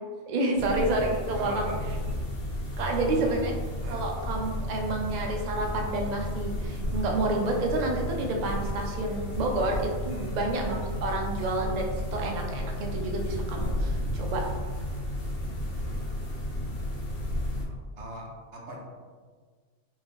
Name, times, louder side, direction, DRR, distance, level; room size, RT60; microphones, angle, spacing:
voice 1, 0.3-1.7 2.8-3.5 3.9-14.4, right 2 dB, 85° right, 1 dB, 0.3 m, -29 dB
sound 1, 0.6-17.6, left 1 dB, 50° left, 0.9 m, -33 dB
voice 2, 1.3-1.8 2.8-3.3 3.8-4.1 10.1-10.4 15.8-16.2 17.6-18.8, equal, 60° right, -1 dB, 0.8 m, -41 dB
2.9 x 2.6 x 3.5 m, 1.5 s
omnidirectional pair, 1.3 m